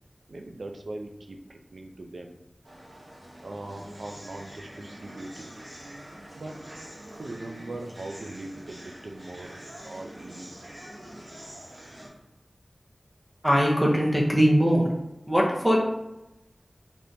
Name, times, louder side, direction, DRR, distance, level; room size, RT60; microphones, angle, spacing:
voice 1, 0.3-2.4 3.4-5.6 6.4-6.6 7.2-9.6 9.8-10.7, right 2 dB, 80° right, 4 dB, 0.4 m, -40 dB
sound 1, 2.6-12.1, right 1 dB, 50° right, 0.7 m, -45 dB
voice 2, 13.4-14.9 15.3-15.8, equal, 15° right, -2 dB, 0.7 m, -21 dB
3.5 x 2.8 x 2.6 m, 0.95 s
wide cardioid pair, 70°, 0 cm